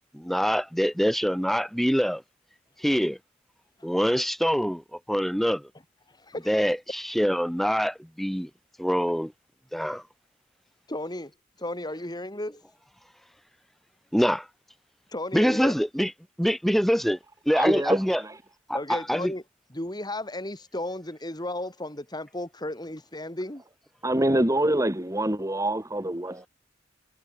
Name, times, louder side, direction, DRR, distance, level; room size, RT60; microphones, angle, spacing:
voice 1, 0.1-2.2 2.8-3.2 3.8-4.8 5.1-5.6 6.5-8.5 8.8-9.3 9.7-10.0 14.1-14.4 15.3-16.1 16.4-17.2 17.5-18.2 18.7-19.3, equal, ahead, 5.9 m, -24 dB
voice 2, 6.1-6.5 10.9-11.3 11.6-12.6 15.1-15.7 18.7-19.4 19.7-23.6, left 1 dB, 20° left, 4.0 m, -34 dB
voice 3, 17.5-18.4 24.0-26.5, right 1 dB, 15° right, 2.2 m, -25 dB
head